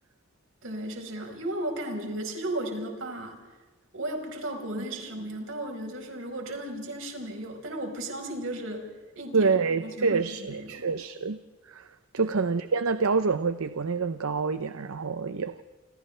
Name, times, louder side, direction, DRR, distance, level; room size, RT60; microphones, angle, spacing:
voice 1, 0.6-3.4 3.9-8.9 9.1-9.5 9.8-10.8 12.2-12.3, right 1 dB, 65° right, 2 dB, 4.8 m, -35 dB
voice 2, 9.3-11.4 11.7-11.9 12.1-15.6, right 4 dB, 85° right, 11 dB, 0.7 m, -27 dB
28.5 x 27.5 x 3.4 m, 1.3 s
head